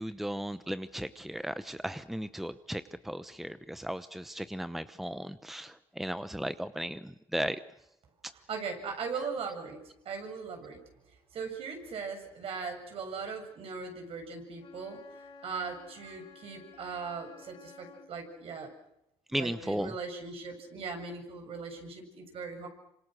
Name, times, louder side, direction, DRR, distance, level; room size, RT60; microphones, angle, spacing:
voice 1, 0.0-7.6 8.2-8.3 19.3-19.9, right 1 dB, ahead, 13 dB, 0.9 m, -36 dB
voice 2, 8.3-9.8 10.0-10.8 11.3-15.0 15.4-18.7 19.3-22.7, right 5 dB, 60° right, 4 dB, 7.4 m, -39 dB
Wind instrument woodwind instrument, 14.6-18.1, left 4 dB, 55° left, 4.0 m, -53 dB
27.0 x 26.0 x 6.5 m, 0.82 s
cardioid pair, 95°, 11 cm